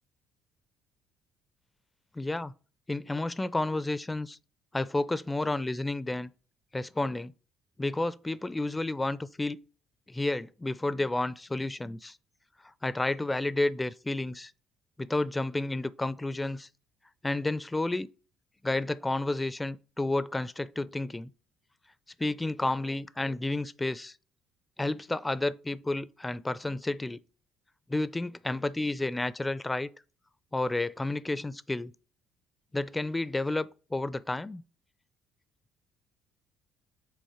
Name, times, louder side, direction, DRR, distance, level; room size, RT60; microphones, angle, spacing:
voice 1, 2.2-2.5 2.9-4.4 4.7-6.3 6.7-7.3 7.8-9.6 10.1-12.2 12.8-14.5 15.0-16.7 17.2-18.1 18.6-21.3 22.2-24.1 24.8-27.2 27.9-29.9 30.5-31.9 32.7-34.6, left 2 dB, 15° left, 0.4 m, -31 dB
6.4 x 3.9 x 4.9 m
supercardioid pair, 65°, 0 cm